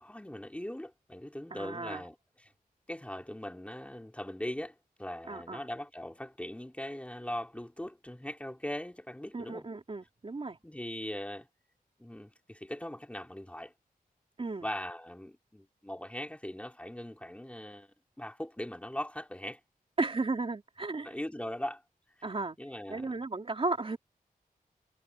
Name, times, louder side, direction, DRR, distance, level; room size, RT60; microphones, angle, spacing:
voice 1, 0.0-2.5 2.9-9.6 10.6-11.5 12.0-13.7 14.6-17.9 18.2-19.6 21.0-21.8 22.6-23.1, left 1 dB, 10° left, 3.0 m, -40 dB
voice 2, 1.5-2.0 5.3-5.6 9.3-10.6 14.4-14.7 20.0-21.1 22.2-22.6 22.9-24.0, right 3 dB, 35° right, 3.4 m, -34 dB
wide cardioid pair, 120°, 15 cm